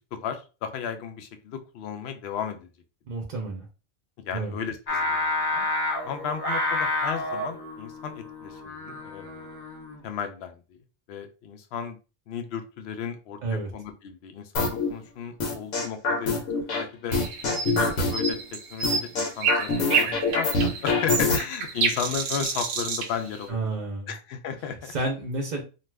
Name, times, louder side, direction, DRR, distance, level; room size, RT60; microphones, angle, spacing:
voice 1, 0.0-2.7 4.2-5.7 6.0-9.5 10.0-10.8 11.1-12.0 12.3-17.2 17.7-23.7 24.1-25.1, left 7 dB, 65° left, 7 dB, 0.7 m, -35 dB
voice 2, 3.1-3.6 4.3-4.5 13.4-13.7 20.1-20.2 23.5-24.1 24.8-25.6, right 2 dB, 45° right, 1 dB, 0.7 m, -30 dB
Singing, 4.9-10.1, left 2 dB, 30° left, 0.4 m, -29 dB
sound 1, 14.6-14.9 15.4-16.8 17.1-18.3 18.8-21.4, left 3 dB, 85° left, 1.1 m, -24 dB
sound 2, 17.1-23.5, right 5 dB, 85° right, 1.0 m, -29 dB
2.5 x 2.4 x 3.2 m, 0.32 s
omnidirectional pair, 1.3 m